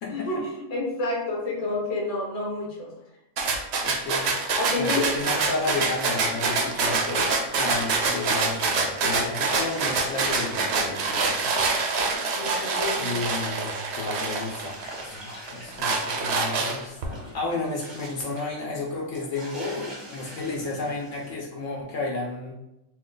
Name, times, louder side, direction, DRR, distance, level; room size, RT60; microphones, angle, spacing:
voice 1, 0.1-2.9 4.5-5.0 12.4-13.1, left 2 dB, 35° left, -2 dB, 0.7 m, -29 dB
sound 1, 3.4-15.0 15.5-17.0, right 4 dB, 65° right, 0.7 m, -26 dB
voice 2, 3.8-4.3 4.8-7.3 7.6-11.5 11.8-12.0 12.9-22.5, left 3 dB, 65° left, -2 dB, 0.9 m, -32 dB
sound 2, 4.8-13.9 14.2-21.3, right 1 dB, 25° right, 0.7 m, -44 dB
2.8 x 2.3 x 3.7 m, 0.89 s
omnidirectional pair, 1.4 m